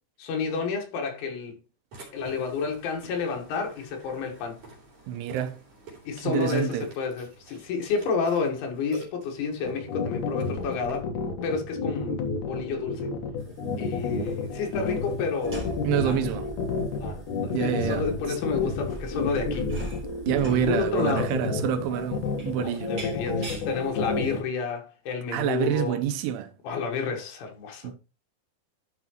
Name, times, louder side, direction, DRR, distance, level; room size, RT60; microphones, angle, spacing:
voice 1, 0.2-1.6 2.1-4.6 6.1-11.1 11.4-13.1 13.8-15.7 16.0-16.2 17.0-19.7 20.5-21.3 22.6-26.0 26.6-27.9, left 5 dB, 80° left, 4.1 m, -30 dB
Burping eructation, 1.9-11.0, right 3 dB, 45° right, 4.6 m, -48 dB
voice 2, 5.1-5.6 6.2-6.9 15.8-16.5 17.5-18.4 20.3-22.9 25.3-26.5 27.8-27.9, right 11 dB, 80° right, 3.3 m, -27 dB
sound 1, 9.7-24.4, left 5 dB, 60° left, 2.2 m, -30 dB
sound 2, 13.4-24.4, right 1 dB, 25° right, 3.4 m, -42 dB
12.0 x 5.8 x 3.0 m
omnidirectional pair, 5.5 m